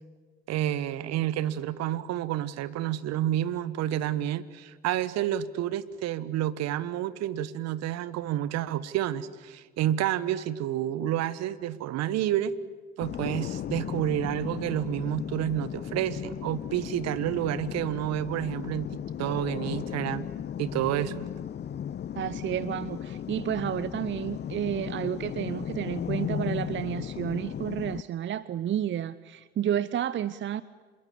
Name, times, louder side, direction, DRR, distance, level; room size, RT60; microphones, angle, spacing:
voice 1, 0.5-12.5 13.0-20.3 20.6-21.3, right 12 dB, 55° right, 16 dB, 1.3 m, -29 dB
sound 1, 13.0-28.0, left 9 dB, 35° left, 0.8 m, -35 dB
voice 2, 22.2-30.6, right 10 dB, 40° right, 17 dB, 0.8 m, -31 dB
27.0 x 22.5 x 8.6 m, 1.5 s
figure-of-eight pair, 50°, 31 cm